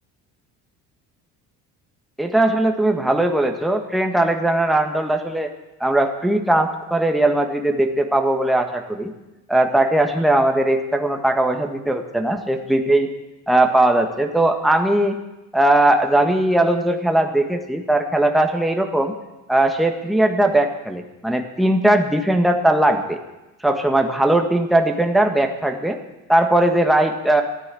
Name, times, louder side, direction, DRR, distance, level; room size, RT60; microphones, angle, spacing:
voice 1, 2.2-5.5 5.8-9.1 9.5-13.1 13.5-15.2 15.5-19.1 19.5-23.2 23.6-26.0 26.3-27.4, right 1 dB, ahead, 4 dB, 1.6 m, -19 dB
14.0 x 9.6 x 7.7 m, 1.0 s
hypercardioid pair, 65°, 42 cm